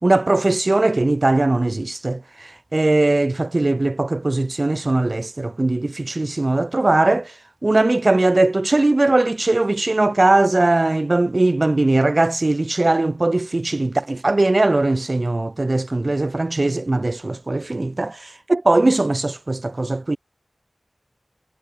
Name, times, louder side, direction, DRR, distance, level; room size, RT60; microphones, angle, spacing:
voice 1, 0.0-7.3 7.6-20.2, right 2 dB, 50° right, 1.6 m, -19 dB
wide cardioid pair, 65°, 0 cm